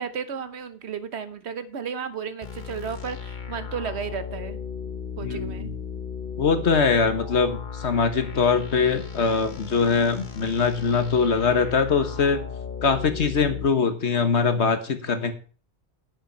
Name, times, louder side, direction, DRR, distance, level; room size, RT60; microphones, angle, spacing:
voice 1, 0.0-4.6 5.2-5.7, right 6 dB, 75° right, 11 dB, 1.3 m, -33 dB
sound 1, 2.4-13.7, left 6 dB, 45° left, 1.0 m, -36 dB
voice 2, 5.2-5.7 6.4-12.4 12.8-15.3, left 5 dB, 80° left, 9 dB, 1.6 m, -22 dB
11.0 x 8.0 x 4.6 m, 0.38 s
omnidirectional pair, 1.1 m